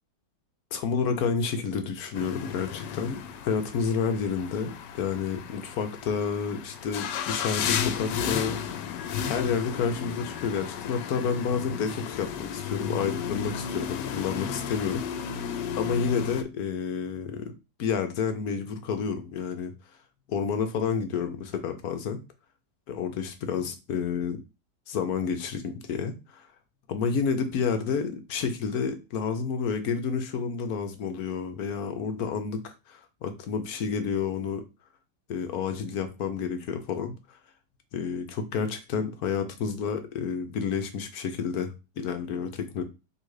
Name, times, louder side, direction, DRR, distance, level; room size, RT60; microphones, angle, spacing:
voice 1, 0.7-8.9 9.3-15.4 15.8-17.5 17.8-19.7 20.3-22.2 22.9-24.4 24.9-26.4 26.9-34.6 35.3-37.4 37.9-42.8, left 6 dB, 65° left, 8 dB, 1.2 m, -30 dB
sound 1, 2.1-16.4, left 8 dB, 85° left, 1.2 m, -34 dB
3.8 x 2.8 x 4.7 m, 0.28 s
omnidirectional pair, 1.8 m